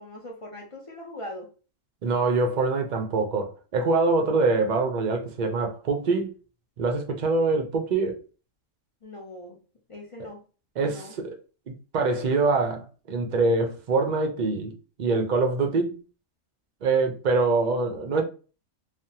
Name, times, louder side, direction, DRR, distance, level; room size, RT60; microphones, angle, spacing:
voice 1, 0.0-1.5 9.0-9.6 9.9-10.4 10.8-11.2, left 1 dB, 50° left, 0.3 m, -40 dB
voice 2, 2.0-6.3 6.8-8.2 10.8-11.3 11.7-16.0 16.8-18.2, right 3 dB, 55° right, 0.5 m, -24 dB
3.3 x 2.0 x 2.7 m
omnidirectional pair, 1.4 m